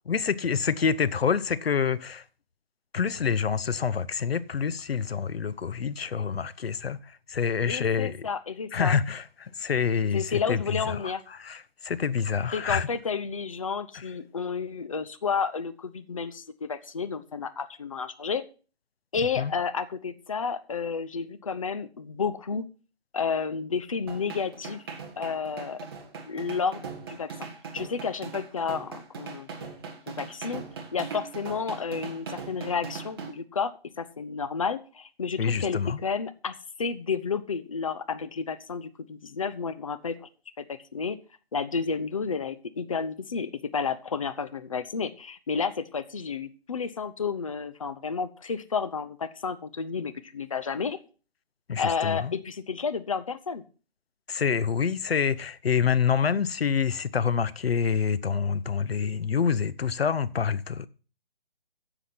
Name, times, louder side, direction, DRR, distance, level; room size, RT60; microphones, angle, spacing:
voice 1, 0.1-2.2 2.9-8.3 8.7-12.9 19.4-19.5 35.4-36.0 51.7-52.3 54.3-60.9, left 6 dB, 75° left, 0.8 m, -27 dB
voice 2, 7.7-9.0 10.1-11.2 12.5-18.4 19.1-22.6 23.1-24.8 25.2-25.8 26.2-27.5 27.7-29.7 30.1-30.6 30.9-40.3 40.6-41.2 41.5-51.0 51.8-53.6, left 5 dB, 35° left, 0.6 m, -31 dB
sound 1, 24.1-33.3, right 5 dB, 25° right, 1.4 m, -40 dB
10.0 x 7.0 x 5.9 m
hypercardioid pair, 165°, 30 cm